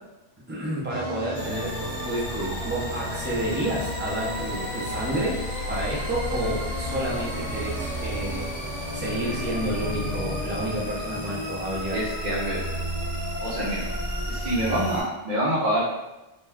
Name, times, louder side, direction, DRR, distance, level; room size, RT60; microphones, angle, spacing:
voice 1, 0.5-5.3 5.7-8.5 8.9-12.1 13.1-13.6, right 1 dB, 15° right, -5 dB, 0.4 m, -30 dB
sound 1, 0.9-11.5, equal, 75° right, 0.9 m, -36 dB
sound 2, 1.3-15.0, equal, 35° left, 0.8 m, -32 dB
voice 2, 11.9-12.6 13.4-13.8 14.3-16.0, right 1 dB, 50° right, -9 dB, 0.7 m, -26 dB
2.5 x 2.2 x 3.4 m, 1.0 s
omnidirectional pair, 1.2 m